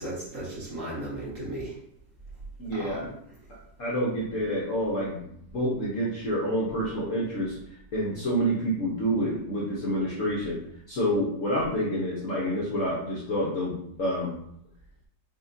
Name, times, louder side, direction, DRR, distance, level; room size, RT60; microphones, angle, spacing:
voice 1, 0.0-1.7 2.7-3.1, right 1 dB, 45° right, -8 dB, 1.8 m, -35 dB
voice 2, 2.6-3.0 3.8-7.5 7.9-10.6 10.9-14.3, equal, 55° left, -6 dB, 1.0 m, -28 dB
5.3 x 2.9 x 2.6 m, 0.72 s
omnidirectional pair, 2.0 m